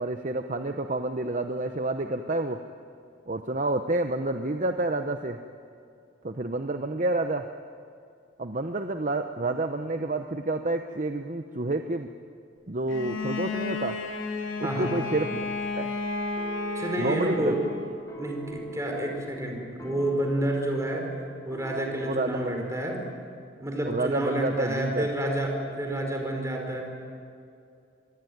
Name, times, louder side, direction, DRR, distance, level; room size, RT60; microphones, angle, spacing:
voice 1, 0.0-2.6 3.3-5.4 6.2-7.5 8.4-12.1 12.7-14.0 14.6-15.4 15.8-15.9 17.0-17.6 22.0-22.6 23.9-25.1, right 2 dB, 40° right, 7 dB, 0.8 m, -29 dB
Bowed string instrument, 12.9-18.0, left 3 dB, 80° left, 3.5 m, -32 dB
voice 2, 14.6-15.0 16.7-17.6 18.2-21.1 21.4-23.0 23.6-26.8, right 1 dB, 15° right, 1 dB, 4.8 m, -29 dB
sound 1, 16.4-22.6, right 1 dB, 15° left, 3.4 m, -44 dB
26.0 x 21.5 x 9.4 m, 2.5 s
head